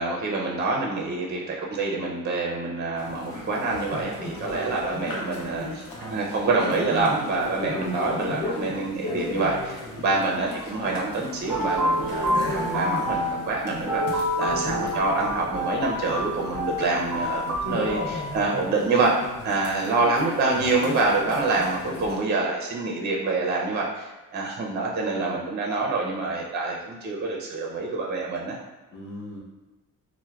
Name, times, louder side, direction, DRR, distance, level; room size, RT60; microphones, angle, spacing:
voice 1, 0.0-19.1 19.4-28.6, right 3 dB, 30° right, -2 dB, 0.4 m, -26 dB
sound 1, 3.0-22.2, left 2 dB, 80° left, 0.7 m, -36 dB
voice 2, 9.8-10.2 14.4-15.0 28.9-29.4, left 1 dB, 35° left, -6 dB, 1.0 m, -40 dB
sound 2, 11.3-18.2, equal, 5° right, 0.9 m, -28 dB
4.4 x 2.1 x 2.2 m, 1.2 s
cardioid pair, 115°, 34 cm